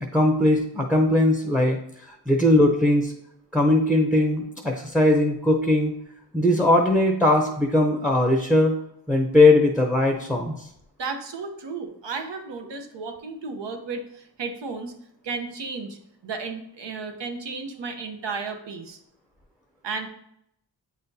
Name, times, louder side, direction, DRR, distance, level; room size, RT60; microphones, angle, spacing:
voice 1, 0.0-1.8 2.1-3.1 3.5-5.9 6.3-8.8 9.1-10.7, left 1 dB, ahead, 3 dB, 0.7 m, -20 dB
voice 2, 11.0-14.9 15.2-19.0 19.8-20.1, right 4 dB, 75° right, 5 dB, 0.9 m, -33 dB
8.3 x 4.2 x 2.7 m, 0.76 s
wide cardioid pair, 85°, 43 cm